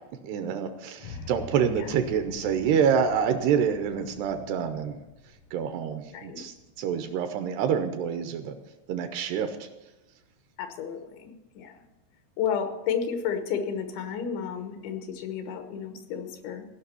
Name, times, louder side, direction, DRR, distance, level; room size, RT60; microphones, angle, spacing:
voice 1, 0.2-5.0 5.5-8.6 8.9-9.7, right 7 dB, 80° right, 8 dB, 2.6 m, -27 dB
sound 1, 1.0-7.1, left 4 dB, 75° left, 1.5 m, -45 dB
voice 2, 6.1-6.5 10.6-11.8 12.4-16.6, left 7 dB, 90° left, 6 dB, 3.5 m, -32 dB
16.0 x 6.1 x 8.2 m, 1.1 s
omnidirectional pair, 5.2 m